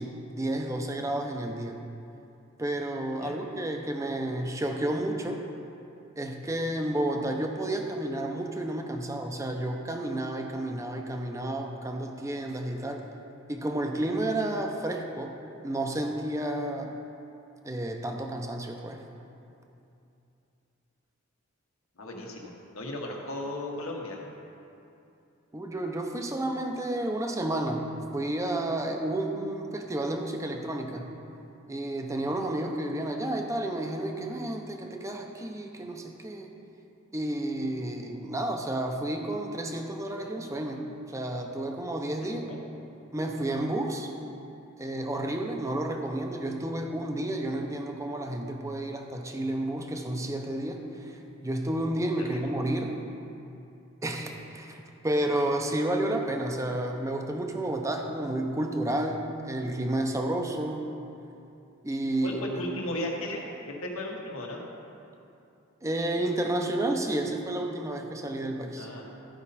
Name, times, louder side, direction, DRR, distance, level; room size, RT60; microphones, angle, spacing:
voice 1, 0.0-1.8 2.6-5.4 6.2-13.1 13.5-15.4 15.6-17.0 17.6-19.0 25.5-31.1 31.7-36.6 37.1-42.4 43.1-44.1 44.8-53.0 54.0-60.9 61.8-62.4 65.8-68.9, right 1 dB, 15° right, 3 dB, 0.6 m, -31 dB
voice 2, 22.0-24.2 42.3-42.6 52.2-52.4 62.2-63.4 63.7-64.6 68.8-69.0, left 1 dB, 90° left, -1 dB, 1.4 m, -35 dB
13.5 x 5.4 x 4.2 m, 2.7 s
head